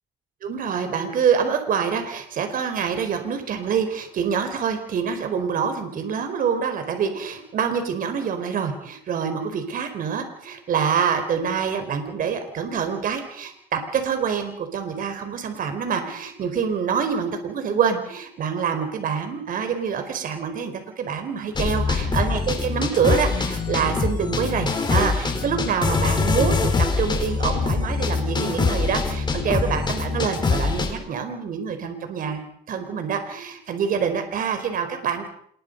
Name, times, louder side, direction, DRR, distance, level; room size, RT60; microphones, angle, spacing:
voice 1, 0.4-26.7 27.0-32.4 32.7-35.3, right 7 dB, 55° right, 7 dB, 4.6 m, -26 dB
sound 1, 21.5-30.9, left 4 dB, 25° left, 4.7 m, -24 dB
27.5 x 22.0 x 5.4 m, 0.63 s
cardioid pair, 110°, 17 cm